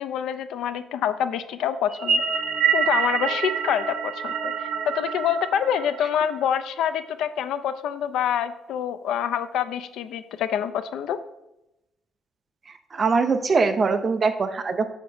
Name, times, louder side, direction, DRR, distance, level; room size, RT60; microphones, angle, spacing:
voice 1, 0.0-2.3 2.7-11.2, left 9 dB, 80° left, 12 dB, 0.4 m, -26 dB
sound 1, 1.9-6.4, right 6 dB, 80° right, 0.9 m, -26 dB
voice 2, 12.9-14.9, right 4 dB, 30° right, 8 dB, 0.4 m, -22 dB
6.7 x 6.4 x 2.6 m, 0.89 s
cardioid pair, 170°, 0 cm